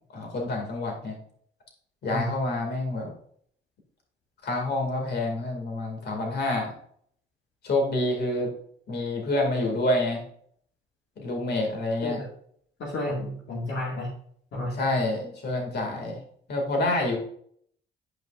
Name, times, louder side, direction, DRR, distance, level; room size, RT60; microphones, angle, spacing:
voice 1, 0.1-1.2 2.0-3.1 4.4-6.7 7.6-8.5 8.9-10.2 11.2-12.2 14.7-16.2 16.5-17.2, left 2 dB, 55° left, 1 dB, 2.2 m, -27 dB
voice 2, 12.8-14.1 14.5-14.7, left 1 dB, 70° left, -3 dB, 1.9 m, -31 dB
9.2 x 5.7 x 2.5 m, 0.62 s
cardioid pair, 90°, 20 cm